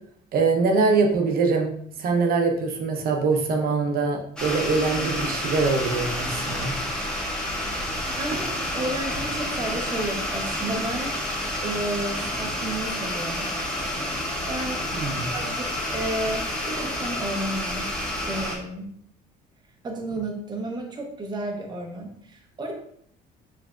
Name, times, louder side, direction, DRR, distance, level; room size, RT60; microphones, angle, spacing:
voice 1, 0.3-1.7 2.0-6.7 14.9-15.3, right 4 dB, 60° right, 3 dB, 0.8 m, -23 dB
sound 1, 4.4-18.6, left 1 dB, 5° left, 0.9 m, -29 dB
voice 2, 8.1-11.1 11.6-13.5 14.5-15.0 15.3-18.9 19.8-22.7, right 1 dB, 25° right, 2 dB, 0.7 m, -32 dB
4.9 x 3.3 x 2.3 m, 0.66 s
cardioid pair, 110°, 17 cm